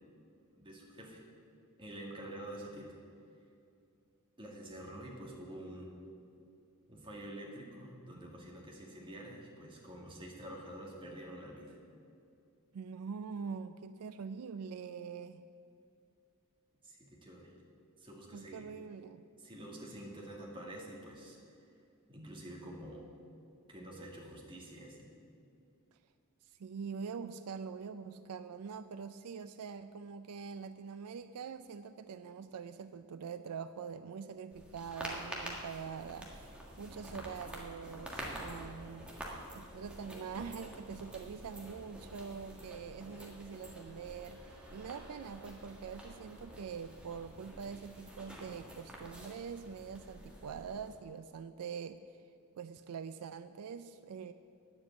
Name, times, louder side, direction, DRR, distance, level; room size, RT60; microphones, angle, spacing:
voice 1, 0.6-1.2 1.8-2.9 4.4-5.9 6.9-11.8 16.8-17.5 18.0-18.7 19.4-21.7 22.1-23.0 23.7-25.1, right 1 dB, 25° right, -2 dB, 2.1 m, -48 dB
voice 2, 12.7-15.4 18.3-19.2 26.6-36.5 36.8-39.1 39.5-52.2 52.6-54.3, right 6 dB, 80° right, 11 dB, 0.4 m, -44 dB
sound 1, 34.5-50.9, equal, 5° right, 1.7 m, -48 dB
10.0 x 7.5 x 8.2 m, 2.5 s
head